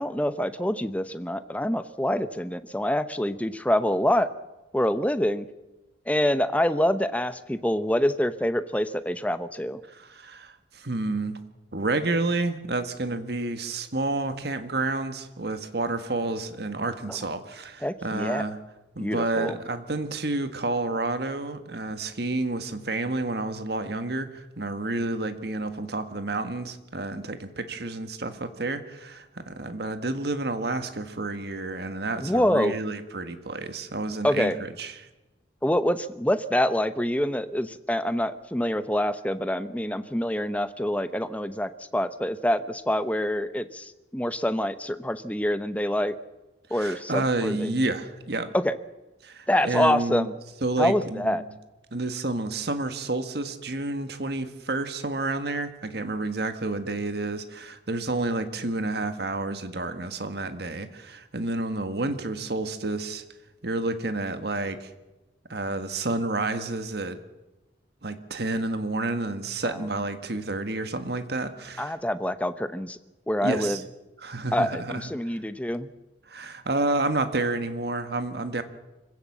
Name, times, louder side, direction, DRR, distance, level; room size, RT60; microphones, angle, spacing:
voice 1, 0.0-4.3 4.7-5.5 6.1-9.8 17.8-18.4 19.0-19.5 32.2-32.7 34.2-34.5 35.6-46.1 46.7-47.7 48.6-48.7 49.5-50.3 50.8-51.4 69.7-69.8 71.8-73.0 73.3-73.8 74.5-75.9, left 1 dB, 10° left, 11 dB, 0.8 m, -26 dB
voice 2, 9.9-11.4 11.7-18.6 18.9-35.1 46.7-48.5 49.2-50.3 50.6-51.5 51.9-63.2 63.6-64.9 65.5-67.2 68.0-72.0 73.4-73.8 74.2-75.4 76.3-78.6, right 2 dB, 60° right, 9 dB, 1.7 m, -30 dB
25.0 x 16.0 x 7.4 m, 1.1 s
head